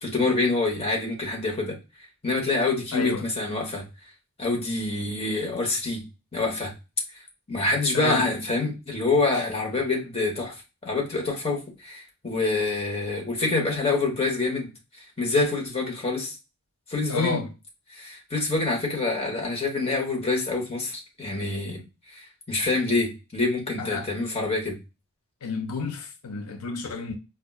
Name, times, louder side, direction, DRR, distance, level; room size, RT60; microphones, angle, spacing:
voice 1, 0.0-1.8 2.2-3.9 4.4-6.0 6.3-6.7 7.5-10.6 10.8-14.7 15.2-16.4 16.9-17.4 17.9-21.8 22.1-24.8, left 3 dB, 25° left, 1.0 m, -26 dB
voice 2, 2.9-3.3 7.9-8.3 17.1-17.5 23.8-24.1 25.4-27.1, left 4 dB, 70° left, 0.5 m, -31 dB
4.4 x 2.3 x 2.2 m
head